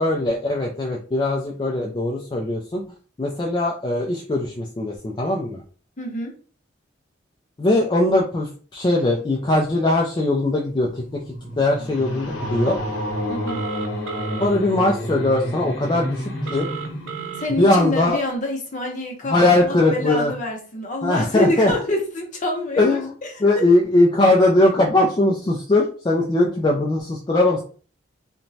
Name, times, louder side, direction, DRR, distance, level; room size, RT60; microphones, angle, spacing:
voice 1, 0.0-2.8 3.2-5.6 7.6-11.2 11.6-12.8 14.4-16.7 17.6-18.2 19.3-20.3 21.0-21.7 22.8-23.1 23.4-27.6, left 2 dB, 25° left, -1 dB, 0.3 m, -20 dB
voice 2, 6.0-6.3 13.3-13.6 17.4-23.7, left 1 dB, 40° left, 1 dB, 0.7 m, -27 dB
sound 1, 10.7-18.1, equal, 70° left, 0.9 m, -30 dB
Telephone, 13.5-14.5 16.4-17.5, right 9 dB, 70° right, 0.6 m, -33 dB
2.9 x 2.2 x 2.6 m, 0.40 s
head